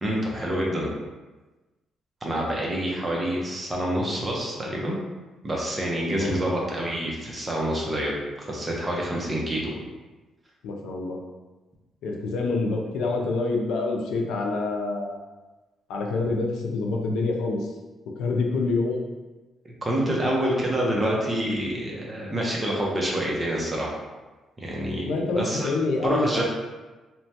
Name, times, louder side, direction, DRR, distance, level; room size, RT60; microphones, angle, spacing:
voice 1, 0.0-0.9 2.2-5.0 5.4-8.1 8.4-9.7 19.8-24.0 24.6-25.7 26.0-26.4, right 1 dB, 25° right, -3 dB, 0.7 m, -27 dB
voice 2, 10.6-11.2 12.0-15.2 15.9-17.7 18.2-19.0 25.0-26.3, left 3 dB, 85° left, 1 dB, 0.4 m, -26 dB
2.9 x 2.2 x 2.8 m, 1.2 s
cardioid pair, 90°, 0 cm